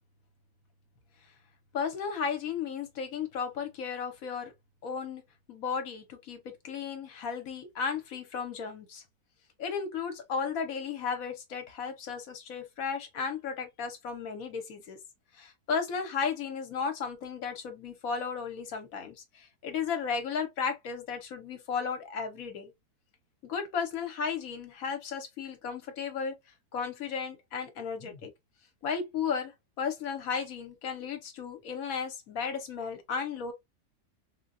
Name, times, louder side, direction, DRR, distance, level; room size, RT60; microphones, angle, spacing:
voice 1, 1.7-4.5 4.8-5.2 5.5-9.0 9.6-15.0 15.4-22.7 23.4-26.3 26.7-28.3 28.8-33.5, left 6 dB, 65° left, 1.2 m, -34 dB
3.6 x 2.2 x 2.5 m
omnidirectional pair, 1.6 m